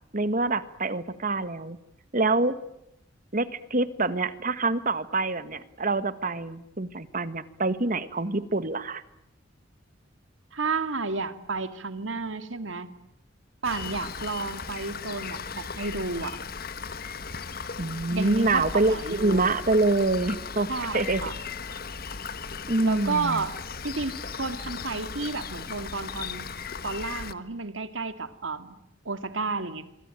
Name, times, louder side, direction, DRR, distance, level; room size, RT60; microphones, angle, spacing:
voice 1, 0.1-1.8 2.1-2.6 3.3-9.0 17.8-20.7 20.9-21.2 22.7-23.4, right 2 dB, 45° right, 13 dB, 1.6 m, -26 dB
voice 2, 10.5-12.9 13.6-16.4 18.1-19.4 20.7-21.3 22.8-23.5 23.8-26.5 26.8-28.8 29.1-29.8, right 3 dB, 80° right, 10 dB, 2.2 m, -31 dB
Rain, 13.6-27.3, left 5 dB, 50° left, 1.4 m, -37 dB
26.5 x 24.0 x 9.0 m, 0.81 s
head